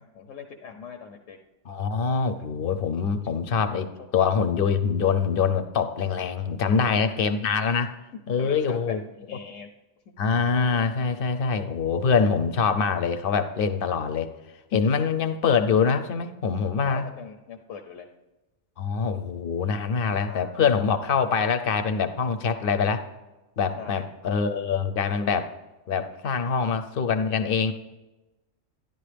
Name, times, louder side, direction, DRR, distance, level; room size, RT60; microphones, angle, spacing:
voice 1, 0.0-1.4 2.3-2.4 3.2-3.6 6.8-7.2 8.4-9.7 16.9-18.1 20.2-20.9 23.7-24.0, left 7 dB, 80° left, 4 dB, 1.1 m, -41 dB
voice 2, 1.7-7.9 8.3-9.0 10.2-14.3 14.7-17.0 18.8-23.0 23.6-25.5 25.9-27.7, left 6 dB, 55° left, 9 dB, 0.7 m, -24 dB
12.5 x 10.5 x 3.4 m, 1.1 s
omnidirectional pair, 1.3 m